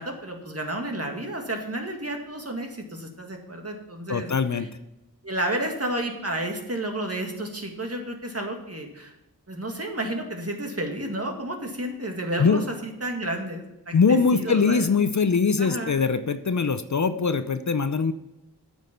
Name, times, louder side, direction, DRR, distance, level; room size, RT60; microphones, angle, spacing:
voice 1, 0.0-4.3 5.2-9.1 9.5-14.9 15.6-15.9, right 1 dB, 40° right, 3 dB, 2.0 m, -31 dB
voice 2, 4.1-4.7 12.4-12.6 13.9-18.1, left 5 dB, 50° left, 12 dB, 0.6 m, -22 dB
9.1 x 6.5 x 5.3 m, 0.93 s
wide cardioid pair, 55°, 38 cm